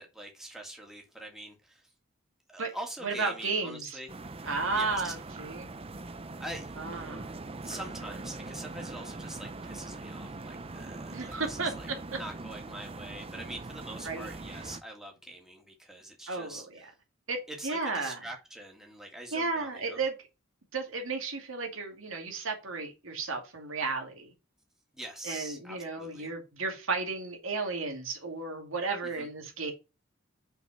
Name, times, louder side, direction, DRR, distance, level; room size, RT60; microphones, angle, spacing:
voice 1, 0.0-1.8 2.5-4.1 4.4-5.1 6.4-6.7 7.6-16.9 17.5-20.0 24.9-26.3 29.0-29.3, right 1 dB, ahead, 2.3 m, -44 dB
voice 2, 3.0-4.0 4.4-5.7 6.8-7.3 11.1-12.2 14.0-14.3 16.3-16.6 17.3-17.4 17.6-18.2 19.3-20.1 20.7-24.3 25.2-29.7, right 4 dB, 75° right, 2.4 m, -33 dB
sound 1, 4.1-14.8, right 2 dB, 30° right, 0.7 m, -42 dB
6.5 x 5.4 x 5.7 m
head